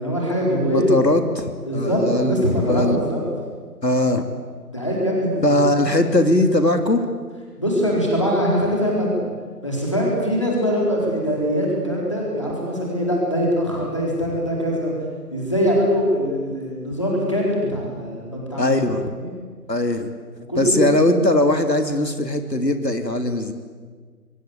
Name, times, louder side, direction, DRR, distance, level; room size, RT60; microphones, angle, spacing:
voice 1, 0.0-1.0 1.7-3.2 4.7-5.7 7.6-9.2 9.6-14.9 15.3-18.9 19.2-19.3 20.5-20.9, equal, 20° left, -3 dB, 4.1 m, -22 dB
voice 2, 0.7-3.0 3.8-4.2 5.4-7.1 18.6-19.1 19.7-20.1 20.6-23.5, left 1 dB, 80° left, 7 dB, 3.3 m, -20 dB
27.0 x 24.0 x 8.6 m, 1.5 s
figure-of-eight pair, 180°, 48 cm